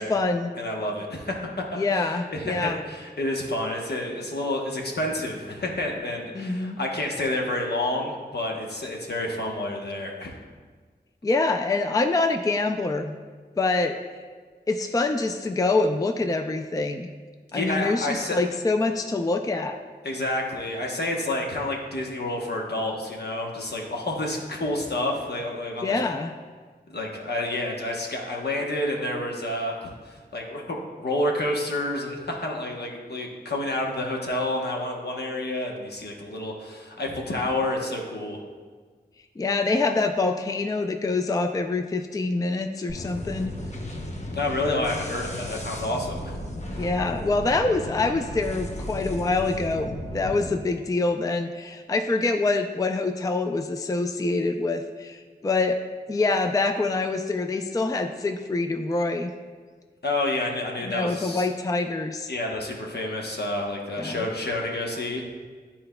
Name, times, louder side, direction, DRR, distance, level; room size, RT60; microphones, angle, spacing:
voice 1, 0.0-0.5 1.8-2.8 6.3-6.8 11.2-13.2 13.6-14.0 14.7-17.1 17.5-19.8 25.8-26.3 39.4-43.5 46.8-55.8 56.1-59.3 60.9-62.3 64.0-64.2, left 3 dB, 20° left, 6 dB, 0.3 m, -25 dB
voice 2, 0.6-10.4 17.5-18.4 20.0-26.0 26.9-38.4 44.3-46.3 46.7-46.8 60.0-61.5 62.3-65.3, left 1 dB, 70° left, 0 dB, 1.0 m, -29 dB
sound 1, 42.9-50.5, left 1 dB, 40° left, 0.9 m, -35 dB
10.0 x 4.3 x 2.2 m, 1.5 s
cardioid pair, 45°, 17 cm